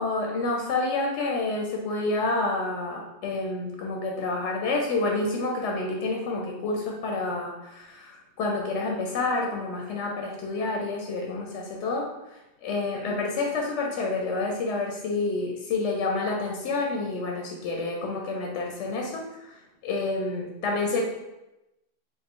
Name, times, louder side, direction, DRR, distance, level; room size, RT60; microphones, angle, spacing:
voice 1, 0.0-12.1 12.6-19.2 19.8-21.0, left 3 dB, 90° left, 0 dB, 0.9 m, -28 dB
4.3 x 2.0 x 3.6 m, 0.95 s
omnidirectional pair, 1.2 m